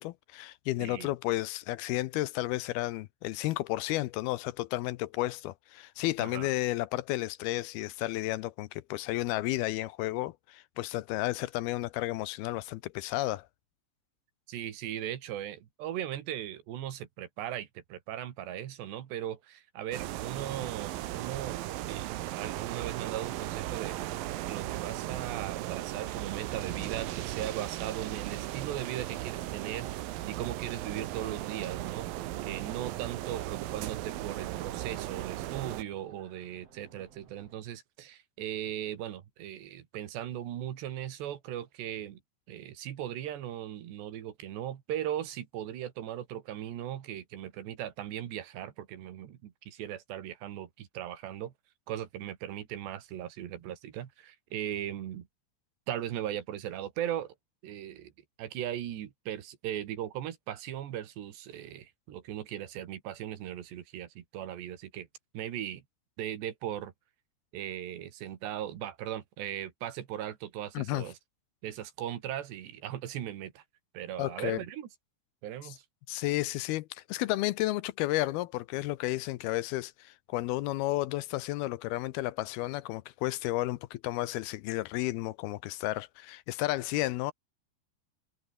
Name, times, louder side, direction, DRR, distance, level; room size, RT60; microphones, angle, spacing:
voice 1, 0.0-13.5 70.8-71.1 74.2-74.6 75.6-75.8 76.1-87.3, left 17 dB, 80° left, 2.5 m, -32 dB
voice 2, 0.8-1.1 6.2-6.5 14.5-21.6 21.9-22.1 22.4-24.0 24.5-30.0 30.3-32.1 32.4-42.2 42.5-51.5 51.9-55.3 55.9-57.4 57.6-58.1 58.4-65.1 65.3-65.8 66.2-66.9 67.5-71.2 71.6-73.6 73.9-74.9 75.4-75.8, right 11 dB, 90° right, 4.2 m, -38 dB
sound 1, 19.9-35.8, right 15 dB, 70° right, 2.6 m, -37 dB
sound 2, 26.5-37.5, right 6 dB, 40° right, 3.9 m, -59 dB
omnidirectional pair, 4.8 m